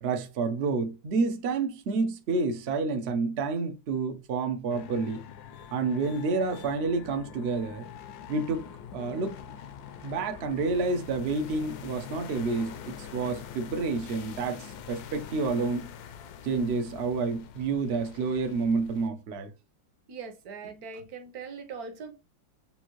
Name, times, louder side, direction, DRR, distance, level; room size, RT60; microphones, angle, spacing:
voice 1, 0.0-5.2 5.7-7.9 8.3-8.6 8.9-9.4 10.0-15.9 16.4-19.5, right 4 dB, 75° right, 0.5 m, -29 dB
sound 1, 4.7-19.1, left 8 dB, 70° left, 1.0 m, -45 dB
voice 2, 20.1-22.1, right 5 dB, 60° right, 1.1 m, -41 dB
6.9 x 2.6 x 3.0 m
omnidirectional pair, 2.1 m